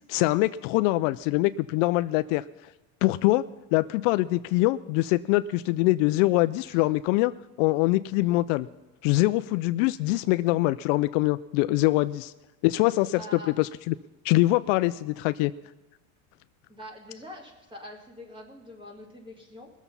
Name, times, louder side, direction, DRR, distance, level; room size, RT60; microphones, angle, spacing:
voice 1, 0.1-2.4 3.0-3.5 3.7-7.3 7.6-8.7 9.0-12.3 12.6-13.9 14.2-15.5, left 18 dB, 65° left, 14 dB, 0.5 m, -24 dB
voice 2, 13.0-13.6 16.7-19.7, left 1 dB, 10° right, 2 dB, 2.5 m, -44 dB
20.5 x 7.2 x 5.5 m, 1.1 s
supercardioid pair, 145°, 41 cm